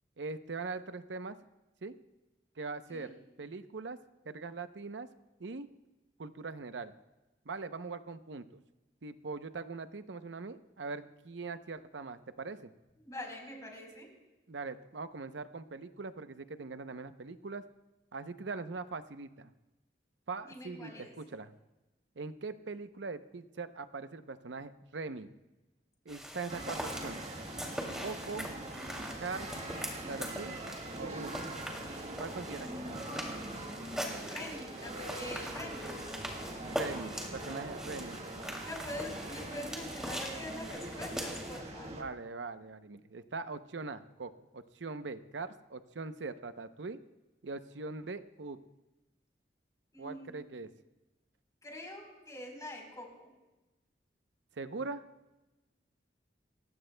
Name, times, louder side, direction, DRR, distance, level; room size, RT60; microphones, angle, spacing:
voice 1, 0.2-1.4 1.8-1.9 2.6-4.0 4.2-5.1 5.4-5.7 6.2-6.9 7.4-8.6 9.0-12.7 14.5-17.6 18.1-19.5 20.3-21.5 22.2-25.3 26.0-27.2 28.0-28.5 29.2-29.5 30.1-30.6 31.0-31.4 32.2-33.0 36.6-38.2 41.9-47.0 47.4-48.6 50.0-50.7 54.6-55.0, right 4 dB, 85° right, 11 dB, 0.7 m, -41 dB
voice 2, 13.0-14.1 20.4-21.1 32.5-35.9 38.6-41.9 49.9-50.3 51.6-53.3, left 1 dB, 20° left, 0 dB, 3.9 m, -45 dB
sound 1, 26.1-41.6, equal, 5° right, 2.5 m, -42 dB
sound 2, 26.5-42.0, right 1 dB, 35° right, 1.7 m, -43 dB
29.5 x 16.0 x 2.2 m, 1.1 s
head